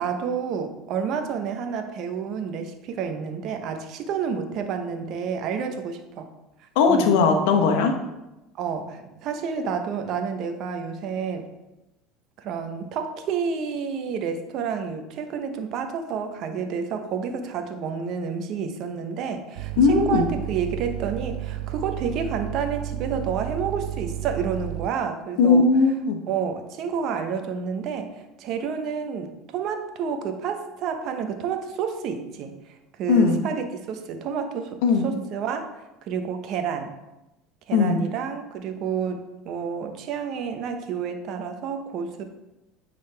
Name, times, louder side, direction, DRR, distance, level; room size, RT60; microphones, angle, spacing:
voice 1, 0.0-6.3 6.9-7.1 8.6-11.5 12.4-25.7 26.3-35.7 36.1-36.9 37.7-42.2, right 6 dB, 55° right, 7 dB, 0.9 m, -30 dB
voice 2, 6.8-7.9 19.8-20.3 25.4-26.2 33.1-33.4 34.8-35.1 37.7-38.0, left 4 dB, 75° left, 4 dB, 1.0 m, -18 dB
sound 1, 19.6-24.9, right 13 dB, 75° right, 0.4 m, -32 dB
9.2 x 4.0 x 3.4 m, 0.97 s
hypercardioid pair, 85°, 0 cm